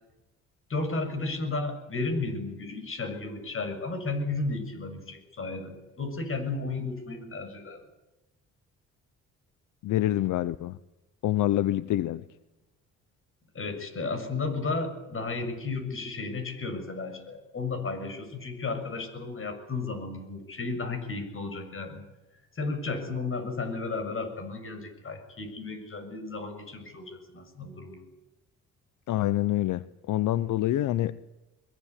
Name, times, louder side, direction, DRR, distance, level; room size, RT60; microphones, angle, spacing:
voice 1, 0.7-7.8 13.5-22.0 22.6-28.0, left 3 dB, 45° left, 7.0 m, -33 dB
voice 2, 9.8-10.8 11.2-12.2 29.1-31.1, left 14 dB, 80° left, 0.8 m, -26 dB
23.0 x 22.5 x 8.4 m
cardioid pair, 90°, 30 cm